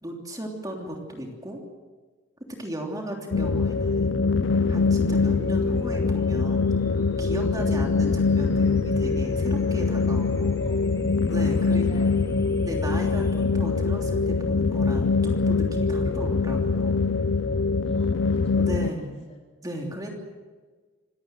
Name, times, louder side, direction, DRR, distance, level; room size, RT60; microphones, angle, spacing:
voice 1, 0.0-1.6 2.5-4.2 4.7-6.7 7.2-10.6 11.3-12.0 12.6-17.1 18.6-19.2 19.6-20.1, equal, 20° right, 1 dB, 3.1 m, -35 dB
sound 1, 3.3-18.9, left 4 dB, 70° left, 0.6 m, -23 dB
sound 2, 3.4-13.4, left 1 dB, 15° left, 4.7 m, -46 dB
voice 2, 10.6-11.0 11.7-12.1 17.9-19.4, left 2 dB, 35° left, 0 dB, 4.2 m, -48 dB
26.5 x 17.0 x 7.7 m, 1.4 s
head